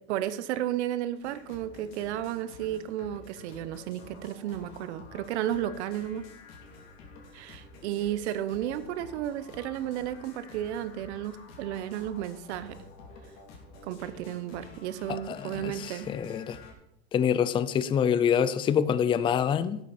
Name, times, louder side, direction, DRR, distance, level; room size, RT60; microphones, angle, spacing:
voice 1, 0.1-6.2 7.3-12.8 13.8-16.1, right 11 dB, 85° right, 13 dB, 0.8 m, -33 dB
sound 1, 1.2-16.7, left 3 dB, 50° left, 3.0 m, -50 dB
voice 2, 15.1-16.6 17.1-19.8, left 8 dB, 15° left, 15 dB, 0.4 m, -26 dB
11.5 x 8.2 x 4.2 m, 0.83 s
supercardioid pair, 135°, 33 cm